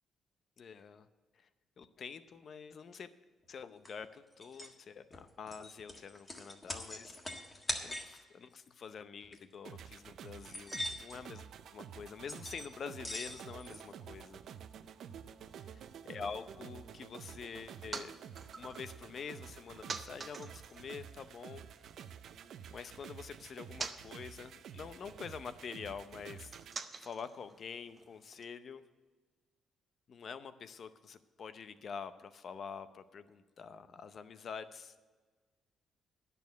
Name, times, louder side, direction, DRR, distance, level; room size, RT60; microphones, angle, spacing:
voice 1, 0.6-1.1 1.3-1.5 1.8-3.1 3.5-14.4 15.6-18.1 18.5-21.6 22.7-26.5 27.0-28.8 30.1-35.1, left 6 dB, 55° left, 12 dB, 0.7 m, -47 dB
sound 1, 3.9-4.0 4.4-4.7 5.1-8.2 9.2-9.4 9.8-9.9 10.3-11.2 12.3-12.7 13.0-13.8, left 1 dB, 25° left, 1.6 m, -42 dB
sound 2, 9.6-26.8, right 8 dB, 70° right, 0.5 m, -50 dB
sound 3, 17.4-22.0 22.3-28.5, right 4 dB, 35° right, 0.7 m, -49 dB
10.5 x 6.8 x 8.2 m, 1.4 s
cardioid pair, 90°, 0 cm